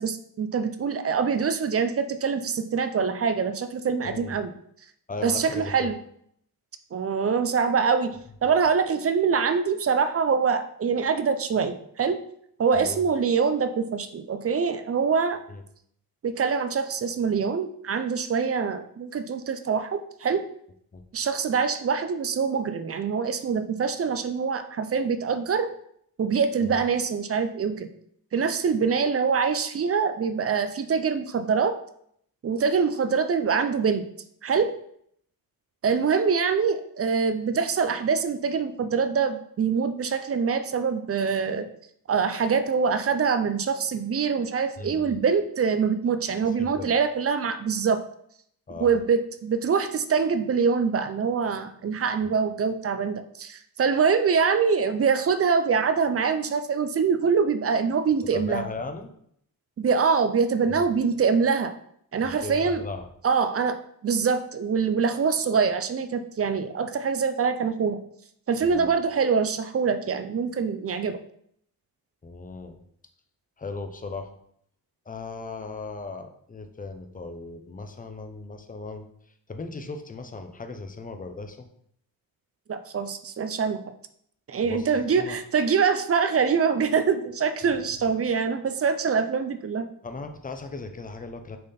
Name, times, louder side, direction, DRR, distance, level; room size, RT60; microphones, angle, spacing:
voice 1, 0.0-4.5 5.2-5.9 6.9-12.2 12.6-15.4 16.2-20.5 21.1-25.7 26.2-27.9 28.3-31.8 32.4-34.0 34.4-34.7 35.8-41.7 42.1-48.0 48.8-58.6 59.8-61.7 62.1-62.8 63.2-63.8 64.0-68.0 68.5-71.2 82.7-83.8 84.5-89.9, right 5 dB, 40° right, 10 dB, 0.5 m, -24 dB
voice 2, 4.0-4.4 5.1-5.9 12.7-13.0 15.5-15.6 20.9-21.0 26.6-26.8 44.8-45.2 46.4-46.9 48.7-49.0 52.2-52.3 58.3-59.1 60.8-60.9 62.2-63.1 68.6-68.9 72.2-72.8 73.6-74.3 75.1-79.1 79.5-81.7 84.6-85.4 87.7-87.8 90.0-91.6, left 3 dB, 20° left, 6 dB, 0.6 m, -37 dB
6.4 x 4.1 x 4.1 m, 0.68 s
wide cardioid pair, 170°, 37 cm